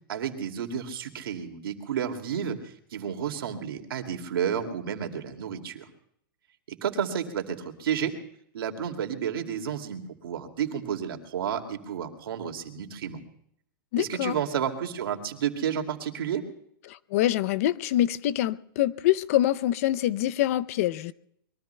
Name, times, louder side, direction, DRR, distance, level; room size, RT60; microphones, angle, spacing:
voice 1, 0.1-5.9 6.8-8.1 8.5-13.2 14.0-16.4, right 8 dB, 75° right, 2.4 m, -31 dB
voice 2, 13.9-14.4 16.9-21.1, left 13 dB, 40° left, 0.6 m, -25 dB
25.5 x 22.0 x 2.2 m
hypercardioid pair, 165°, 12 cm